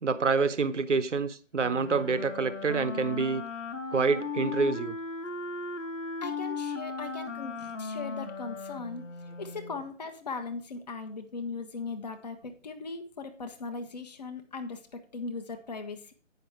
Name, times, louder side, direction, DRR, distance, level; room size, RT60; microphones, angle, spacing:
voice 1, 0.0-3.4 3.9-4.9, right 4 dB, 70° right, 0.9 m, -27 dB
Wind instrument woodwind instrument, 1.6-9.8, left 4 dB, 80° left, 1.3 m, -37 dB
voice 2, 6.2-9.0 9.4-16.1, left 4 dB, 35° left, 0.9 m, -39 dB
9.3 x 5.6 x 4.8 m
figure-of-eight pair, 155°, 37 cm